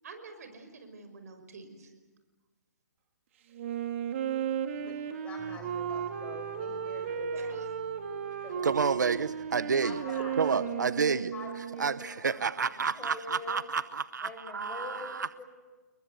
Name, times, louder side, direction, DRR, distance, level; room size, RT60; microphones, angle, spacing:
voice 1, 0.0-1.9 7.4-7.7, right 4 dB, 60° right, 7 dB, 5.9 m, -48 dB
Wind instrument woodwind instrument, 3.5-12.1, right 8 dB, 45° right, 2.5 m, -35 dB
voice 2, 5.2-7.6 8.4-8.7 9.8-13.6 14.2-15.1 15.4-15.5, left 4 dB, 15° left, 4 dB, 5.0 m, -45 dB
sound 1, 5.4-10.7, right 5 dB, 20° right, 4.0 m, -53 dB
voice 3, 8.6-10.0 10.4-11.3 11.8-15.4, right 5 dB, 90° right, 15 dB, 0.9 m, -30 dB
30.0 x 21.5 x 8.3 m, 1.3 s
hypercardioid pair, 155°, 9 cm